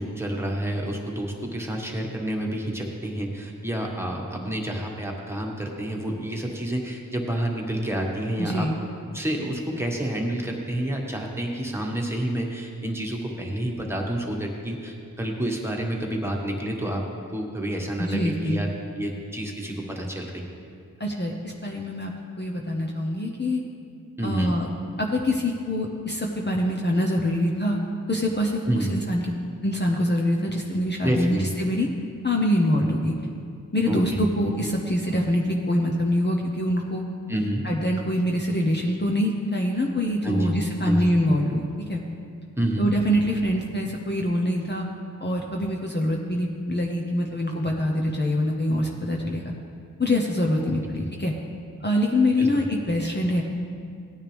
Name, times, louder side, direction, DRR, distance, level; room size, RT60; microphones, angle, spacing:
voice 1, 0.0-8.7 9.1-17.0 17.3-18.7 19.0-20.3 24.2-24.5 28.7-28.9 31.0-31.5 33.9-34.2 37.3-37.7 40.2-40.5 40.8-41.1 42.6-42.9 50.6-50.7 52.4-52.5, right 1 dB, 5° right, -1 dB, 1.6 m, -28 dB
voice 2, 8.4-8.7 18.0-18.6 21.0-22.1 22.4-23.6 24.2-24.7 25.0-27.8 28.1-29.2 29.6-31.9 32.2-33.1 33.7-37.0 37.6-42.0 42.8-44.8 45.2-49.4 50.0-51.3 51.8-53.4, left 1 dB, 30° left, -1 dB, 1.0 m, -24 dB
17.0 x 9.4 x 3.5 m, 2.3 s
wide cardioid pair, 70°, 34 cm